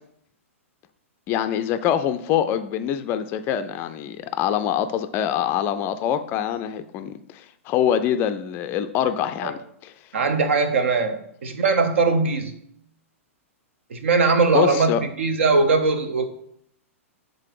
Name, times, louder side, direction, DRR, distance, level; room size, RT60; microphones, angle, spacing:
voice 1, 1.3-9.9 14.5-15.0, left 10 dB, 30° left, 10 dB, 0.4 m, -24 dB
voice 2, 10.1-12.6 13.9-16.2, right 4 dB, 60° right, 8 dB, 0.9 m, -20 dB
7.5 x 3.9 x 4.8 m, 0.71 s
figure-of-eight pair, 105°, 8 cm